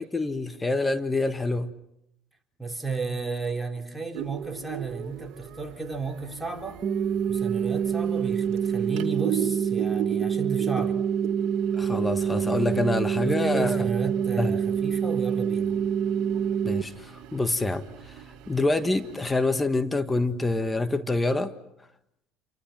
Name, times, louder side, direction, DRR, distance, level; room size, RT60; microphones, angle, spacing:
voice 1, 0.0-1.7 11.7-13.9 14.4-14.6 16.6-18.2 18.5-21.5, left 2 dB, 15° left, 1.6 m, -26 dB
voice 2, 2.6-6.8 7.3-11.0 13.2-15.7, right 4 dB, 5° right, 3.8 m, -33 dB
sound 1, 4.1-19.5, right 11 dB, 60° right, 2.6 m, -40 dB
sound 2, 6.8-16.8, right 8 dB, 40° right, 1.5 m, -26 dB
28.0 x 24.5 x 5.9 m
hypercardioid pair, 75°, 0 cm